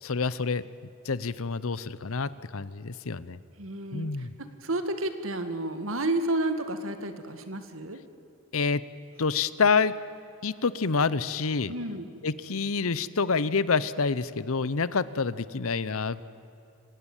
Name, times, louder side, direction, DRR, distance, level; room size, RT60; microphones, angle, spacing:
voice 1, 0.0-0.6 1.0-3.4 3.9-4.4 8.5-8.8 9.2-9.9 10.4-11.7 12.2-16.2, left 4 dB, 75° left, 17 dB, 0.8 m, -27 dB
voice 2, 3.6-8.0 11.6-12.1, right 2 dB, 65° right, 9 dB, 1.9 m, -31 dB
27.0 x 17.0 x 9.1 m, 2.8 s
head